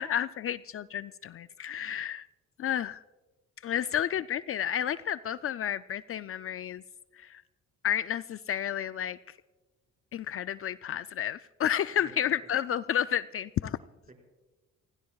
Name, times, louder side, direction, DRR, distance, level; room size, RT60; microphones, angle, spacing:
voice 1, 0.0-2.3 2.6-3.0 3.6-6.8 7.2-7.4 7.8-9.2 10.1-13.8, left 10 dB, 50° left, 14 dB, 0.4 m, -31 dB
voice 2, 12.0-12.5 13.8-14.1, right 3 dB, 25° right, 1 dB, 5.1 m, -56 dB
29.5 x 16.0 x 2.3 m, 1.2 s
cardioid pair, 90°, 30 cm